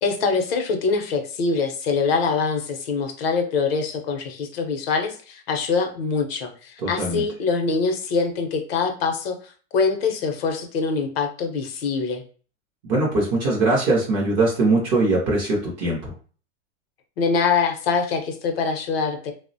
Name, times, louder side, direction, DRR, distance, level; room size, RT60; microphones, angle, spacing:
voice 1, 0.0-9.4 9.7-12.2 17.2-19.3, left 4 dB, 55° left, 5 dB, 0.6 m, -24 dB
voice 2, 6.8-7.2 12.8-16.1, right 2 dB, 20° right, -3 dB, 0.3 m, -21 dB
2.9 x 2.0 x 2.5 m, 0.40 s
supercardioid pair, 150°, 37 cm